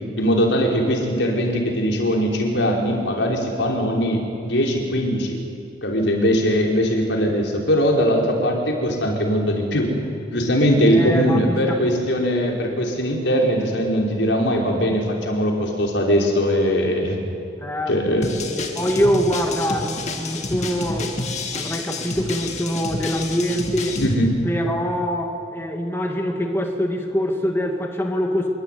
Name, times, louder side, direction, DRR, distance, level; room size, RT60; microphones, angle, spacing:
voice 1, 0.2-5.4 5.8-9.9 10.3-17.2 17.9-18.3 24.0-24.3, equal, 75° left, 0 dB, 5.3 m, -20 dB
voice 2, 10.8-11.8 17.6-18.1 18.6-21.1 21.5-24.0 24.4-28.5, equal, 15° left, 2 dB, 2.1 m, -24 dB
sound 1, 18.2-24.1, left 2 dB, 40° left, 2.6 m, -29 dB
27.0 x 23.5 x 9.5 m, 2.5 s
head